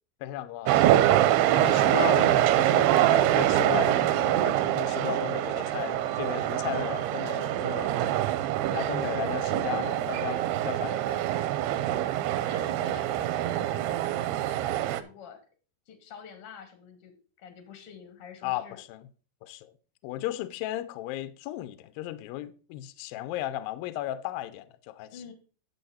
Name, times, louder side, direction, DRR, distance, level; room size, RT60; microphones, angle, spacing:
voice 1, 0.2-8.2 8.7-11.3 18.4-19.0 19.4-19.7 20.0-25.2, left 13 dB, 80° left, 2.2 m, -35 dB
sound 1, 0.7-15.0, right 13 dB, 85° right, 2.6 m, -25 dB
voice 2, 6.7-7.2 12.5-13.8 14.2-15.4 15.9-18.8 25.1-25.3, left 7 dB, 60° left, 1.5 m, -48 dB
10.5 x 7.2 x 4.1 m
omnidirectional pair, 4.7 m